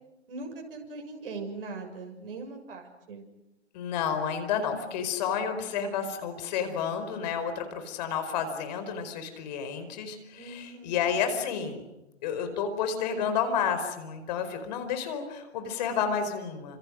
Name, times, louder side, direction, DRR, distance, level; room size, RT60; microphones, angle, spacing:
voice 1, 0.3-3.2 10.4-11.0, right 3 dB, 50° right, 4 dB, 6.8 m, -40 dB
voice 2, 3.7-11.8 12.2-16.8, left 7 dB, 35° left, 8 dB, 4.8 m, -31 dB
30.0 x 27.5 x 6.4 m, 0.94 s
hypercardioid pair, 135°, 35 cm